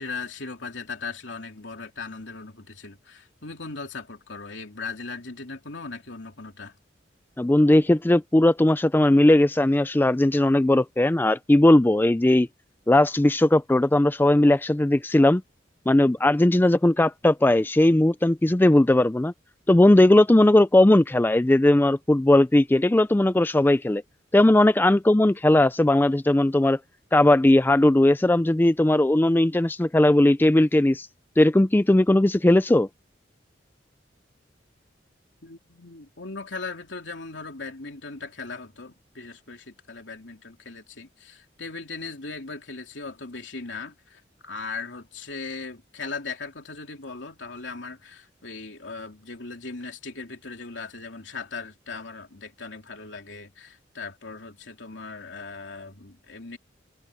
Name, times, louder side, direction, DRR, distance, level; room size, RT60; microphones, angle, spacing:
voice 1, 0.0-6.7 35.4-56.6, left 4 dB, 70° left, 3.4 m, -38 dB
voice 2, 7.4-12.5 12.9-15.4 15.9-19.3 19.7-24.0 24.3-26.8 27.1-31.1 31.4-32.9, left 1 dB, 10° left, 0.4 m, -18 dB
head